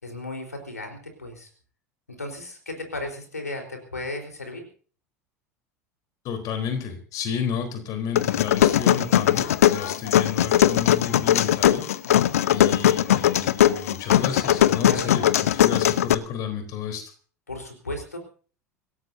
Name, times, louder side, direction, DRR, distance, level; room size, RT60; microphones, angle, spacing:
voice 1, 0.0-1.5 2.1-4.7 12.0-12.3 14.8-15.2 17.5-18.2, left 2 dB, 80° left, 4 dB, 4.2 m, -35 dB
voice 2, 6.2-11.9 12.5-15.3 15.5-17.0, left 7 dB, 45° left, 5 dB, 3.9 m, -31 dB
sound 1, 8.2-16.1, left 11 dB, 65° left, 0.8 m, -19 dB
26.0 x 17.0 x 2.8 m, 0.41 s
figure-of-eight pair, 75°, 8 cm